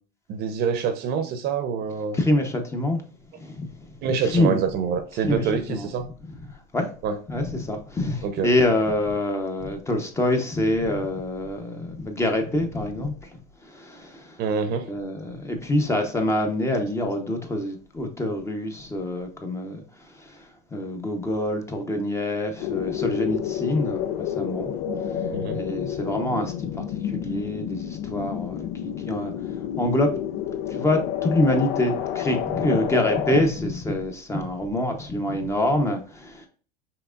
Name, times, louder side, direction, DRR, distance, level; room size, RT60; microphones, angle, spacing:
voice 1, 0.3-2.2 4.0-6.1 7.0-7.2 8.2-8.5 14.4-14.9 25.3-25.6, right 6 dB, 50° right, 0.8 m, -26 dB
voice 2, 2.1-3.0 3.4-4.6 5.2-5.9 6.5-6.9 7.3-14.4 14.8-24.7 25.0-25.2 25.5-30.1 30.7-36.5, left 1 dB, 15° left, 0.8 m, -26 dB
sound 1, 22.6-33.4, left 10 dB, 70° left, 0.6 m, -29 dB
5.8 x 3.5 x 2.4 m
supercardioid pair, 130°, 21 cm